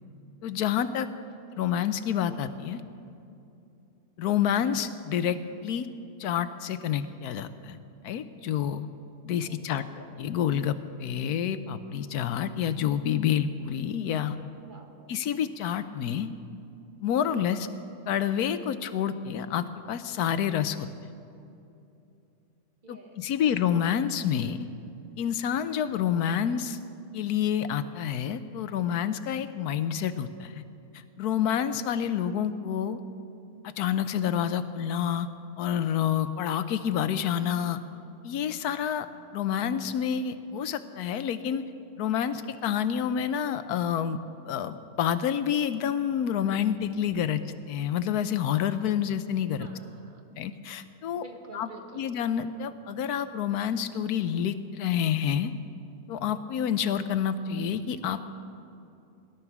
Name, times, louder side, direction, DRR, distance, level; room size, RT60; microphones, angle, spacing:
voice 1, 0.4-1.1 1.6-2.8 4.2-5.9 6.2-7.8 8.0-8.9 9.2-9.8 10.2-14.4 15.1-16.3 17.0-17.7 18.1-20.9 22.9-24.7 25.2-26.8 27.1-30.6 31.2-33.0 33.6-35.3 35.6-37.8 38.2-39.1 39.3-41.6 42.0-47.4 47.7-49.7 50.4-51.2 51.5-51.7 51.9-55.5 56.1-58.3, left 9 dB, 90° left, 12 dB, 1.2 m, -28 dB
voice 2, 1.3-1.7 9.5-10.1 14.6-15.2 22.8-23.3 49.6-50.2 51.1-52.1, right 2 dB, 35° right, 3 dB, 1.4 m, -50 dB
17.5 x 12.0 x 6.0 m, 2.7 s
omnidirectional pair, 1.6 m